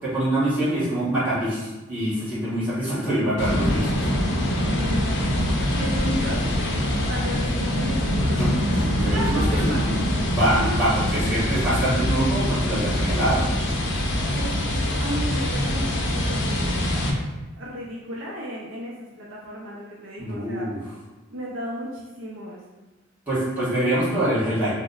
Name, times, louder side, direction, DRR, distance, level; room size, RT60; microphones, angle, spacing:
voice 1, 0.0-4.0 8.4-8.5 8.7-9.4 9.8-13.5 20.2-20.8 23.3-24.7, right 1 dB, 10° right, -13 dB, 1.2 m, -25 dB
sound 1, 3.4-17.1, left 1 dB, 60° left, 0.5 m, -24 dB
voice 2, 4.6-9.9 10.4-10.8 14.1-16.8 17.6-20.7 21.3-22.6, equal, 70° right, -3 dB, 0.5 m, -34 dB
3.0 x 2.0 x 3.8 m, 1.1 s
head